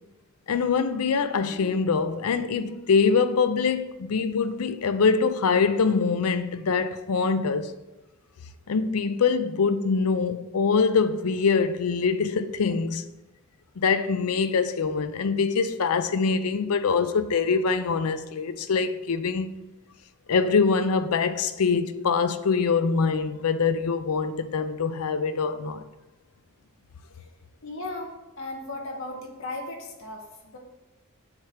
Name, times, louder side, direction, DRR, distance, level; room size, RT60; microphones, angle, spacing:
voice 1, 0.5-7.7 8.7-13.0 13.8-19.5 20.3-25.8, left 5 dB, 85° left, 0.5 m, -24 dB
voice 2, 27.6-30.6, left 2 dB, 60° left, 1.0 m, -36 dB
7.4 x 3.3 x 5.9 m
head